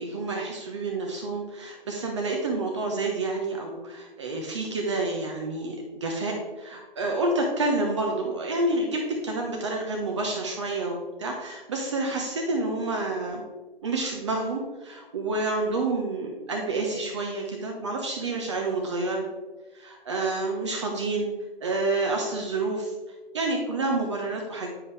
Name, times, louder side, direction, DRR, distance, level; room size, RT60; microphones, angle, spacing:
voice 1, 0.0-13.4 13.8-19.2 19.7-21.3 21.6-22.9 23.3-24.7, right 2 dB, 30° right, 1 dB, 0.9 m, -29 dB
9.3 x 5.2 x 3.3 m, 1.2 s
figure-of-eight pair, 140°, 30 cm